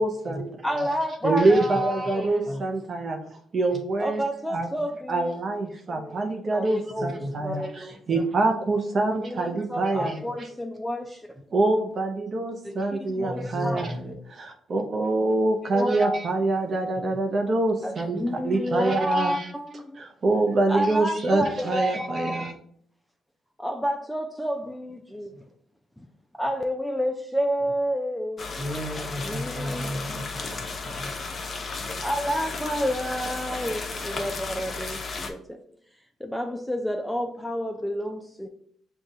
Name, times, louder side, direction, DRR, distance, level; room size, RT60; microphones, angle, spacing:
voice 1, 0.0-0.4 0.7-0.8 1.2-3.2 3.5-4.7 5.1-10.5 11.5-13.9 14.3-19.5 20.0-22.5, right 2 dB, 45° right, 3 dB, 0.5 m, -25 dB
voice 2, 0.6-2.5 4.0-5.4 5.9-8.2 9.2-11.3 12.6-13.9 15.7-16.2 17.8-20.0 20.7-22.5 23.6-25.3 26.0-26.1 26.3-28.6 28.9-30.3 32.0-35.6 36.2-38.5, equal, 5° left, 5 dB, 0.4 m, -30 dB
voice 3, 7.0-7.3 9.9-10.4 13.2-14.1 28.6-31.1, equal, 25° right, 2 dB, 1.1 m, -34 dB
sound 1, 28.4-35.3, left 3 dB, 40° left, 0.7 m, -34 dB
6.3 x 2.3 x 2.7 m, 0.65 s
cardioid pair, 90°, 0 cm